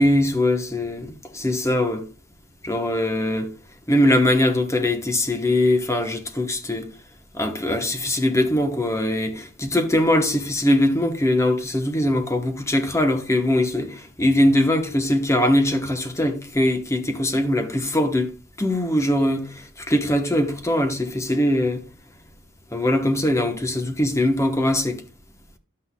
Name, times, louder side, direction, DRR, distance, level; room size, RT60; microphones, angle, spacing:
voice 1, 0.0-2.1 2.6-3.5 3.9-6.9 7.3-18.3 18.6-21.8 22.7-25.0, left 1 dB, 15° left, 1.0 m, -21 dB
11.5 x 8.1 x 2.3 m
head